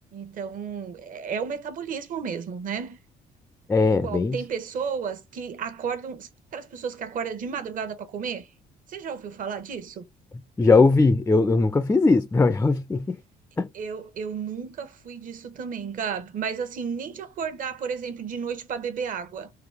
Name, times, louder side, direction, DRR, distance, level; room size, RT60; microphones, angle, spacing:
voice 1, 0.1-3.0 3.9-8.5 8.9-10.0 13.7-19.5, right 6 dB, 50° right, 1.0 m, -33 dB
voice 2, 3.7-4.4 10.6-13.2 13.6-13.7, left 3 dB, 15° left, 0.3 m, -19 dB
3.9 x 2.8 x 3.3 m
cardioid pair, 110°, 17 cm